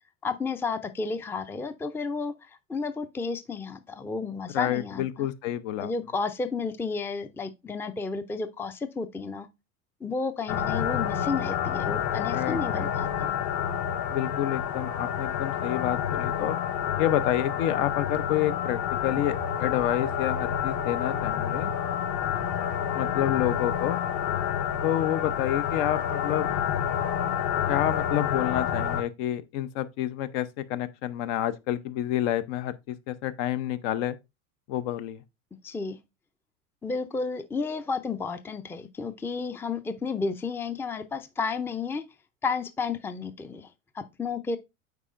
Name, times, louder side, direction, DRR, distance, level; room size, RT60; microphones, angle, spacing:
voice 1, 0.2-2.3 2.7-5.3 5.8-9.5 10.0-13.3 35.6-36.0 36.8-42.0 42.4-43.7 44.0-44.6, left 4 dB, 5° left, 0.4 m, -32 dB
voice 2, 4.5-5.9 12.3-12.9 14.1-16.6 17.0-21.7 23.0-24.0 24.8-26.5 27.7-34.1 34.7-35.2, left 12 dB, 60° left, 0.7 m, -29 dB
sound 1, 10.5-29.0, left 9 dB, 45° left, 1.0 m, -29 dB
8.2 x 4.6 x 2.5 m
hypercardioid pair, 85°, 41 cm